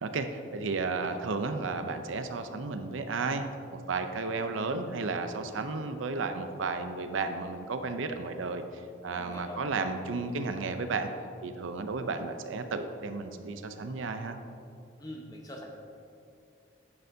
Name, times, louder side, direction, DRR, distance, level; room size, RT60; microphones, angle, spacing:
voice 1, 0.0-3.5 3.9-8.6 9.0-11.1 11.4-14.4, right 3 dB, 85° right, 8 dB, 0.5 m, -33 dB
voice 2, 9.1-9.6 15.0-15.6, left 1 dB, 20° left, 0 dB, 0.8 m, -43 dB
10.0 x 6.7 x 2.7 m, 2.5 s
head